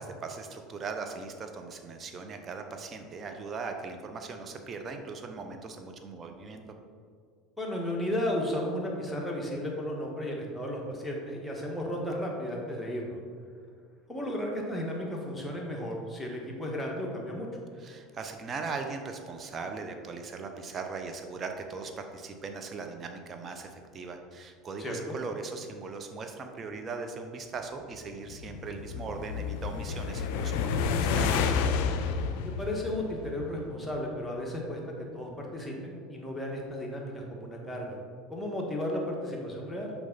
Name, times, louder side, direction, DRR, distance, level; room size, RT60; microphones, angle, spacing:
voice 1, 0.0-6.6 17.8-31.5, right 4 dB, 35° right, 5 dB, 0.8 m, -39 dB
voice 2, 7.6-13.2 14.1-17.5 24.8-25.1 32.4-34.8 35.1-38.0 38.3-39.9, left 1 dB, 5° left, -2 dB, 1.7 m, -34 dB
sound 1, 28.1-33.6, left 6 dB, 65° left, 0.5 m, -30 dB
6.4 x 4.9 x 4.1 m, 2.1 s
hypercardioid pair, 75°, 0 cm